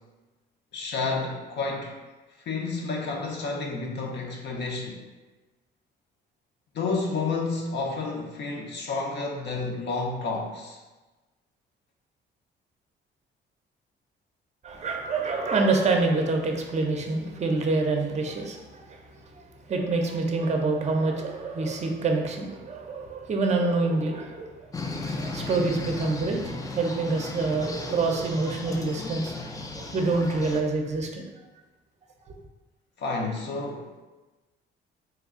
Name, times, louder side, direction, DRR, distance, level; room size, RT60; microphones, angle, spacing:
voice 1, 0.7-2.0 2.5-5.0 6.7-10.8 33.0-34.0, left 3 dB, 60° left, 0 dB, 0.6 m, -30 dB
voice 2, 14.6-31.2, right 3 dB, 35° right, 3 dB, 0.5 m, -27 dB
sound 1, 24.7-30.6, left 2 dB, 20° left, 0.4 m, -35 dB
3.2 x 2.3 x 3.6 m, 1.2 s
cardioid pair, 90°, 20 cm